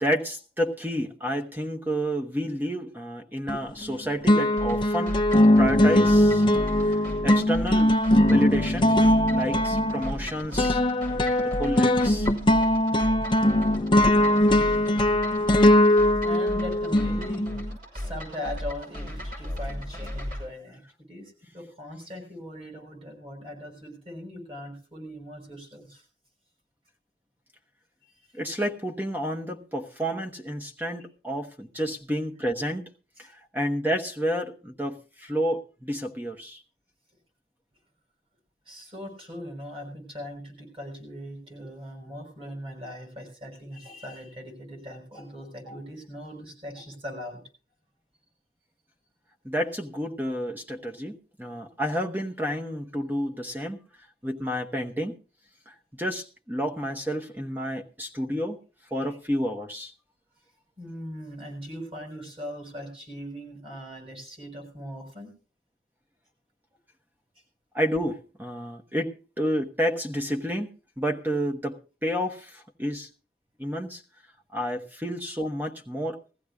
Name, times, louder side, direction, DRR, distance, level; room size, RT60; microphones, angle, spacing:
voice 1, 0.0-5.2 5.6-6.5 7.2-8.9 9.3-10.8 11.4-12.3 28.3-32.8 33.2-36.6 49.4-53.8 54.2-55.2 55.7-58.6 58.9-59.9 67.7-70.7 71.0-73.1 73.6-74.0 74.5-76.2, equal, 10° right, 1.1 m, -30 dB
sound 1, 3.5-3.9 4.3-17.7, left 1 dB, 30° left, 0.7 m, -21 dB
sound 2, 4.6-20.4, left 1 dB, 50° right, 6.0 m, -36 dB
voice 2, 6.6-7.0 13.8-13.9 14.6-15.0 15.9-20.8 21.1-26.0 31.8-31.9 33.2-33.3 38.6-47.4 58.9-59.2 60.8-65.3, equal, 30° right, 6.2 m, -40 dB
20.5 x 15.0 x 2.4 m
head